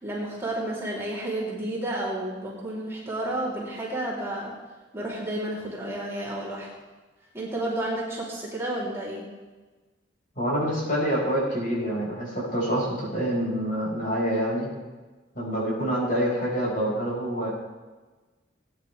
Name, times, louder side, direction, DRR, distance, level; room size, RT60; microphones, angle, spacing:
voice 1, 0.0-4.5 4.9-6.7 7.3-9.2, right 1 dB, 15° right, -7 dB, 3.1 m, -31 dB
voice 2, 10.4-14.7 15.4-17.5, equal, 50° left, -5 dB, 5.2 m, -26 dB
20.0 x 10.0 x 3.3 m, 1.3 s
head